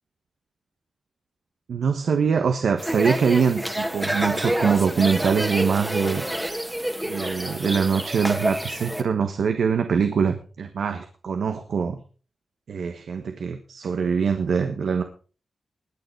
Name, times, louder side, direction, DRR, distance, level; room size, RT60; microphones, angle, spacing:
voice 1, 1.7-6.2 7.0-12.0 12.7-15.0, right 6 dB, 85° right, 7 dB, 1.3 m, -23 dB
sound 1, 2.8-9.0, equal, 5° right, 1.6 m, -28 dB
20.5 x 6.9 x 4.7 m, 0.38 s
cardioid pair, 75°, 0 cm